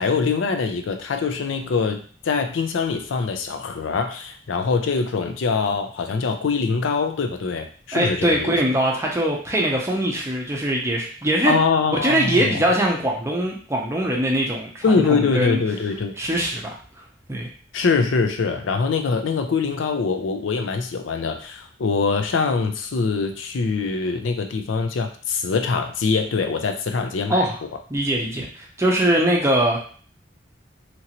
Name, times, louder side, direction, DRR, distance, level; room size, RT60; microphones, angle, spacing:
voice 1, 0.0-8.6 11.4-12.6 14.8-16.1 17.7-27.4, left 4 dB, 80° left, 5 dB, 0.4 m, -23 dB
voice 2, 7.9-11.6 11.9-15.6 16.2-16.8 17.3-17.5 27.3-27.6 27.9-29.8, right 1 dB, 15° right, -1 dB, 0.5 m, -22 dB
2.9 x 2.6 x 2.8 m, 0.43 s
head